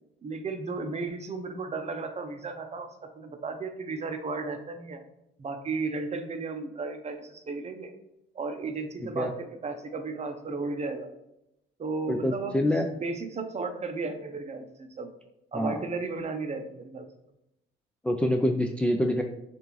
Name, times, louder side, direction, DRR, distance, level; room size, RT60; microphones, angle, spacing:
voice 1, 0.2-5.0 5.4-7.9 8.3-11.1 11.8-12.6 12.9-15.1 15.5-17.1, right 3 dB, 35° right, 6 dB, 0.7 m, -34 dB
voice 2, 12.1-12.9 15.5-15.8 18.0-19.2, left 1 dB, 5° left, 3 dB, 0.4 m, -26 dB
6.4 x 2.6 x 3.1 m, 0.85 s
cardioid pair, 90°, 20 cm